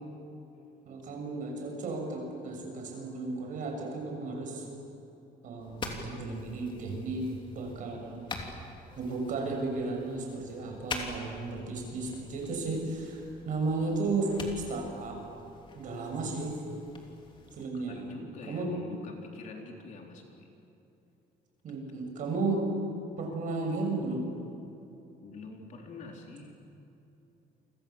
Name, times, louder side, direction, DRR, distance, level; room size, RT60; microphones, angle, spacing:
voice 1, 0.8-4.7 5.4-8.2 8.9-15.2 15.7-16.6 17.5-18.1 18.5-18.7 21.6-22.7 23.2-24.3, right 3 dB, 50° right, 1 dB, 6.8 m, -34 dB
sound 1, 5.6-17.7, left 3 dB, 30° left, 3.0 m, -45 dB
voice 2, 17.7-20.5 25.2-26.5, left 3 dB, 45° left, 1 dB, 3.8 m, -46 dB
29.5 x 25.5 x 7.3 m, 2.9 s
cardioid pair, 175°, 17 cm